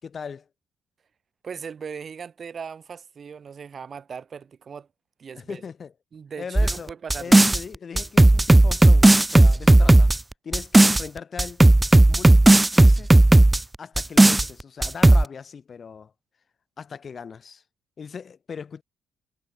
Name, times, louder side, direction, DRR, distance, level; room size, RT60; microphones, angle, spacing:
voice 1, 0.0-0.5 5.3-5.9 6.4-10.1 10.4-11.6 12.1-13.2 13.8-16.1 16.8-17.6 18.0-18.8, left 6 dB, 45° left, 5.8 m, -39 dB
voice 2, 1.4-4.9 5.2-5.6 6.1-7.5, right 6 dB, 45° right, 6.5 m, -38 dB
sound 1, 6.6-7.6 8.0-11.0 11.4-13.6 14.0-14.5 14.8-15.2, right 2 dB, 15° right, 1.2 m, -14 dB
cardioid pair, 90°, 0 cm